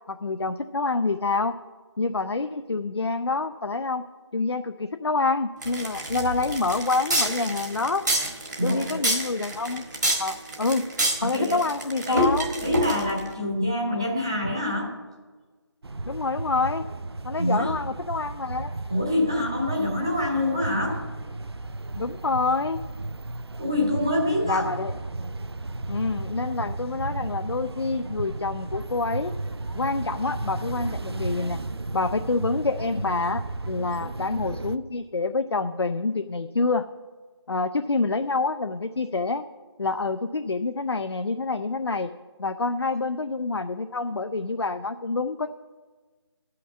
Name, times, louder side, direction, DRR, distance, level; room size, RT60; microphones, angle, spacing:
voice 1, 0.1-1.5 2.0-4.0 4.3-8.0 8.6-9.9 10.2-10.9 11.2-12.5 16.1-16.9 17.2-18.7 22.0-22.8 24.4-25.0 25.9-29.3 29.7-31.6 31.9-36.8 37.5-39.5 39.8-42.1 42.4-45.5, left 3 dB, 65° left, 8 dB, 0.5 m, -27 dB
sound 1, 5.6-13.3, right 1 dB, 40° right, 1.4 m, -28 dB
voice 2, 8.6-9.0 11.2-11.6 12.1-15.0 17.4-17.7 18.9-21.0 23.6-24.7, left 1 dB, 10° right, -3 dB, 0.7 m, -25 dB
sound 2, 15.8-34.8, right 2 dB, 60° right, 0.6 m, -34 dB
12.0 x 5.8 x 7.3 m, 1.3 s
figure-of-eight pair, 175°, 15 cm